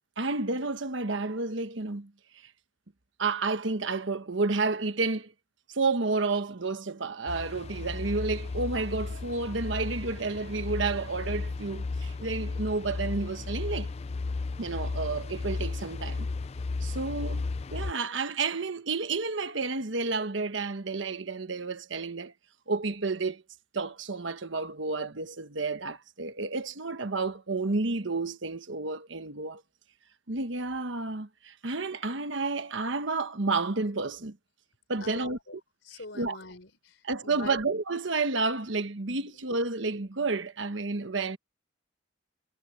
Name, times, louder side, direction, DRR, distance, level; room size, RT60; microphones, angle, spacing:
voice 1, 0.2-2.1 2.4-2.5 3.2-5.3 5.7-13.9 14.6-16.3 16.8-22.3 22.7-23.4 23.7-29.6 30.3-34.4 34.9-35.4 36.1-36.4 37.0-41.4, right 3 dB, 70° right, 1.2 m, -31 dB
sound 1, 7.3-17.9, left 3 dB, 30° left, 0.4 m, -34 dB
voice 2, 35.0-35.6 35.8-37.6 39.3-39.4, left 3 dB, 70° left, 3.8 m, -43 dB
head